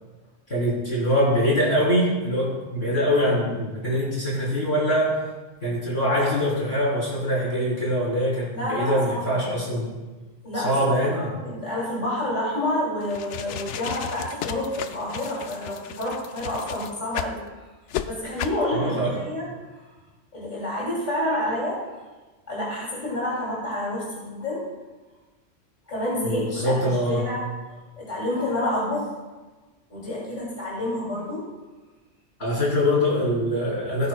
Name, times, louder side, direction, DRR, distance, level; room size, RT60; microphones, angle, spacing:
voice 1, 0.5-5.2 5.6-9.9 10.5-11.3 18.7-19.2 26.2-27.2 32.4-34.1, equal, 55° left, -6 dB, 3.8 m, -23 dB
voice 2, 8.5-9.4 10.4-10.7 11.1-17.4 18.0-19.5 20.3-21.8 22.5-24.6 25.9-27.4 28.0-29.1 29.9-31.5, left 1 dB, 35° left, -7 dB, 3.1 m, -28 dB
sound 1, 13.0-17.4 17.9-18.1 18.4-18.6, left 9 dB, 75° left, 0.9 m, -34 dB
16.5 x 9.6 x 2.3 m, 1.2 s
omnidirectional pair, 1.3 m